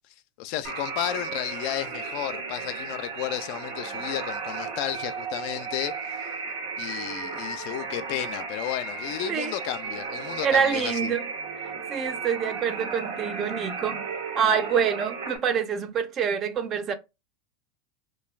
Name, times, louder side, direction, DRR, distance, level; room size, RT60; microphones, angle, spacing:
voice 1, 0.4-6.3 6.8-11.1, left 12 dB, 60° left, 0.3 m, -33 dB
sound 1, 0.6-15.4, right 4 dB, 80° right, 1.1 m, -34 dB
voice 2, 10.4-11.3 11.6-14.0 14.4-16.9, right 7 dB, 35° right, 0.5 m, -26 dB
2.3 x 2.2 x 3.1 m
hypercardioid pair, 115°, 0 cm